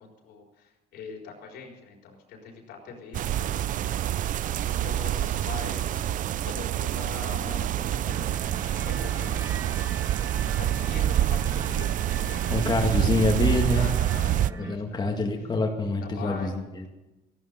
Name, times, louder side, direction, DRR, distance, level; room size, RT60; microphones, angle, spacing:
voice 1, 0.0-4.0 4.4-6.1 6.4-8.3 8.7-9.5 10.2-12.0 12.3-13.3 13.7-15.5 16.0-16.5, left 4 dB, 80° left, 1 dB, 4.3 m, -42 dB
sound 1, 3.1-14.5, right 12 dB, 50° right, 0.4 m, -27 dB
sound 2, 8.1-14.8, right 3 dB, 15° right, 1.5 m, -40 dB
voice 2, 12.5-13.9 14.6-16.9, left 2 dB, 25° left, 1 dB, 2.1 m, -26 dB
14.5 x 11.5 x 6.8 m, 1.0 s
cardioid pair, 110°, 17 cm